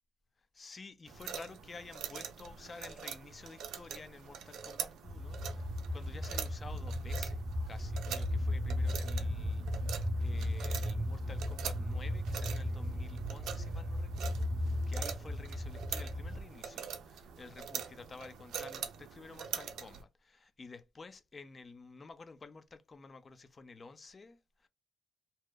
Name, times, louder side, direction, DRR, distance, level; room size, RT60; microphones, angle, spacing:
voice 1, 0.5-7.4 7.7-24.7, left 4 dB, 35° left, 0.4 m, -51 dB
sound 1, 1.1-20.0, right 8 dB, 80° right, 0.4 m, -44 dB
sound 2, 5.1-16.4, left 1 dB, 25° right, 0.8 m, -36 dB
2.8 x 2.1 x 2.2 m
cardioid pair, 90°, 0 cm